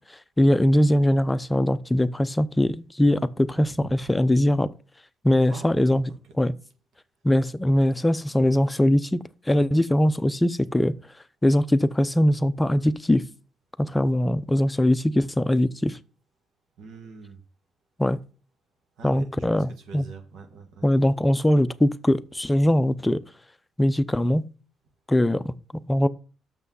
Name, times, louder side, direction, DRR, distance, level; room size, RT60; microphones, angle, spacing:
voice 1, 0.4-4.7 5.2-6.1 6.4-6.5 7.2-9.2 9.5-10.9 11.4-13.2 13.8-16.0 18.0-18.2 19.0-20.1 20.8-23.2 23.8-24.5 25.1-26.1, left 1 dB, 10° left, 0.6 m, -21 dB
voice 2, 16.8-17.4 19.0-20.8, right 4 dB, 80° right, 1.7 m, -43 dB
6.8 x 6.1 x 5.5 m
cardioid pair, 90°, 0 cm